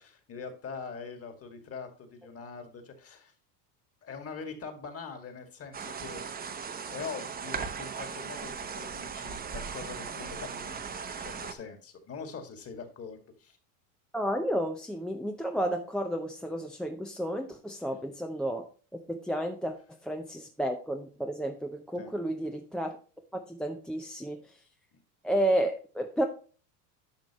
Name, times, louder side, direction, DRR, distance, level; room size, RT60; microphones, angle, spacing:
voice 1, 0.0-3.3 4.0-6.4 6.9-13.6 22.0-22.1, left 5 dB, 30° left, 2.1 m, -43 dB
sound 1, 5.7-11.5, right 6 dB, 20° right, 0.9 m, -38 dB
voice 2, 14.1-18.7 18.9-19.8 20.0-23.0 23.3-24.4 25.2-26.3, right 1 dB, ahead, 0.5 m, -31 dB
10.5 x 6.4 x 3.0 m
supercardioid pair, 120°, 48 cm